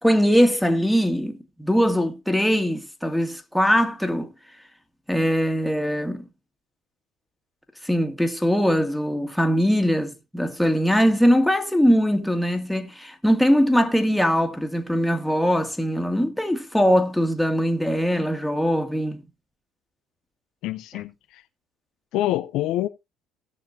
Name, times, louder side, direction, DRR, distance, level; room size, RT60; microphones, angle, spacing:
voice 1, 0.0-4.3 5.1-6.3 7.8-19.2, equal, ahead, 1.8 m, -21 dB
voice 2, 20.6-21.4 22.1-22.9, left 14 dB, 70° left, 0.5 m, -26 dB
18.0 x 6.6 x 2.6 m
hypercardioid pair, 70°, 0 cm